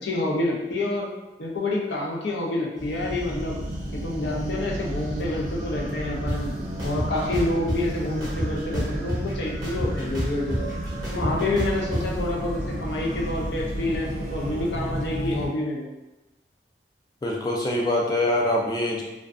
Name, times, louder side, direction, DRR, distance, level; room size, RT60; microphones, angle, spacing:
voice 1, 0.0-1.1 1.4-3.6 4.0-6.6 6.8-10.7 11.1-15.8, left 2 dB, 75° left, -3 dB, 0.6 m, -28 dB
sound 1, 2.8-15.5, right 1 dB, 45° right, 0.4 m, -32 dB
sound 2, 6.3-6.4 6.8-7.8 8.2-9.3 9.6-12.0, equal, 20° right, 0.8 m, -28 dB
voice 2, 17.2-19.0, left 1 dB, 20° left, -2 dB, 0.4 m, -24 dB
2.4 x 2.3 x 2.4 m, 1.0 s
head